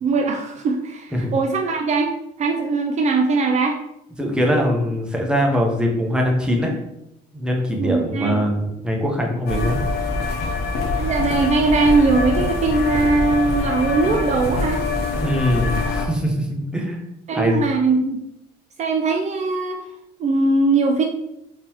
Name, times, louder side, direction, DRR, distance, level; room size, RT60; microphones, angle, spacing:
voice 1, 0.0-2.1 2.4-3.8 7.8-8.4 11.0-14.8 17.3-18.2 18.8-19.8 20.2-21.0, right 3 dB, 45° right, 3 dB, 0.4 m, -20 dB
voice 2, 4.2-6.7 7.3-9.8 15.2-17.0 17.3-17.6, equal, 5° right, 0 dB, 0.8 m, -22 dB
sound 1, 9.5-16.1, left 3 dB, 70° left, 0.8 m, -24 dB
3.7 x 2.8 x 2.9 m, 0.83 s
cardioid pair, 110°, 17 cm